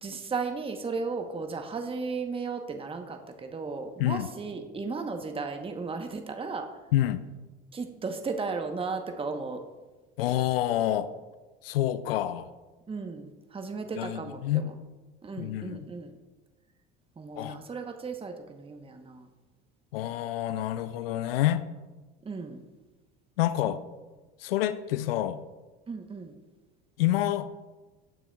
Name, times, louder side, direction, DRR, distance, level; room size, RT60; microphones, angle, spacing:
voice 1, 0.0-6.7 7.7-9.6 12.9-14.7 15.2-16.1 17.2-19.3 22.2-22.6 25.9-26.3, right 4 dB, 20° right, 5 dB, 1.0 m, -35 dB
voice 2, 6.9-7.2 10.2-11.1 11.6-12.5 14.0-14.7 15.4-15.9 17.4-17.6 19.9-21.6 23.4-23.8 24.4-25.4 27.0-27.5, left 13 dB, 80° left, 13 dB, 0.5 m, -27 dB
17.0 x 6.0 x 2.3 m, 1.2 s
hypercardioid pair, 70°, 29 cm